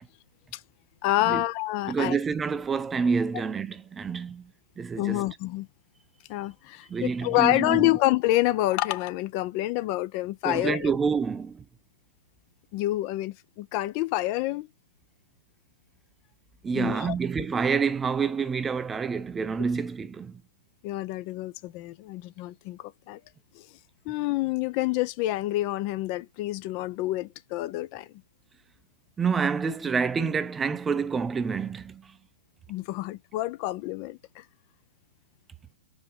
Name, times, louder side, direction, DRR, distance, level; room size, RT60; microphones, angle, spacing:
voice 1, 1.0-2.2 5.0-5.7 6.3-10.9 12.7-14.7 16.7-17.1 20.8-22.8 23.1-23.2 24.1-28.1 32.7-34.4, left 17 dB, 35° left, 0.6 m, -27 dB
voice 2, 1.9-4.5 4.8-5.2 6.9-7.9 10.4-11.6 16.6-20.3 29.2-32.1, right 5 dB, 15° right, 0.5 m, -28 dB
5.3 x 4.7 x 5.1 m
figure-of-eight pair, 115°, 0 cm